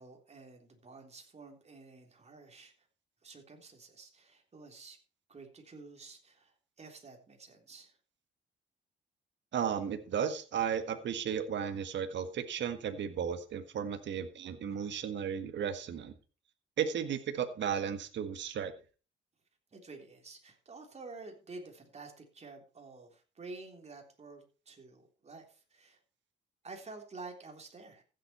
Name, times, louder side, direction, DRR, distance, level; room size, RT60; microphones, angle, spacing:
voice 1, 0.0-2.7 3.2-5.0 5.3-7.9 19.7-26.0 26.6-28.0, right 3 dB, 35° right, 3 dB, 3.6 m, -50 dB
voice 2, 9.5-16.1 16.8-18.7, right 8 dB, 65° right, 9 dB, 1.6 m, -34 dB
15.0 x 7.8 x 4.4 m, 0.35 s
cardioid pair, 90°, 20 cm